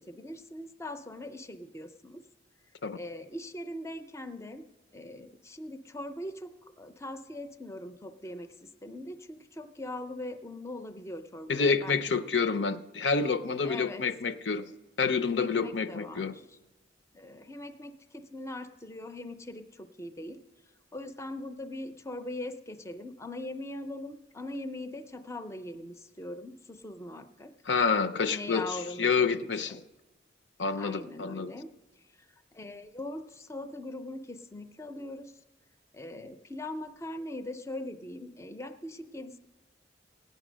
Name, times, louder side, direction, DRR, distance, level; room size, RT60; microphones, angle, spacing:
voice 1, 0.0-2.3 3.0-4.6 4.9-12.2 13.6-14.1 15.4-16.6 17.1-20.4 20.9-27.5 28.3-29.8 30.8-31.7 32.2-35.4 35.9-39.4, left 1 dB, 15° left, 9 dB, 0.5 m, -41 dB
voice 2, 11.5-14.7 15.0-16.3 27.7-28.6 29.0-29.8 30.6-31.5, left 5 dB, 70° left, 10 dB, 0.6 m, -28 dB
16.5 x 9.2 x 6.2 m, 1.1 s
head